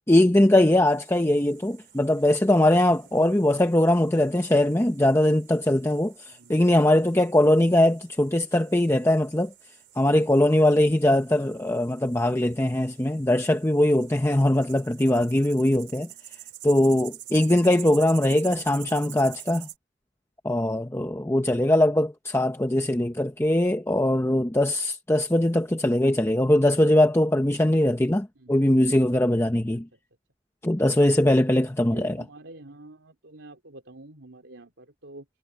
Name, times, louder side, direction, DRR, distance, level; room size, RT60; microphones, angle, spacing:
voice 1, 0.1-9.5 10.0-16.1 16.6-19.7 20.4-29.9 30.6-32.2, left 1 dB, 15° left, 0.8 m, -21 dB
sound 1, 0.9-19.8, right 14 dB, 60° right, 4.7 m, -47 dB
voice 2, 31.9-35.2, right 2 dB, 85° right, 3.2 m, -47 dB
head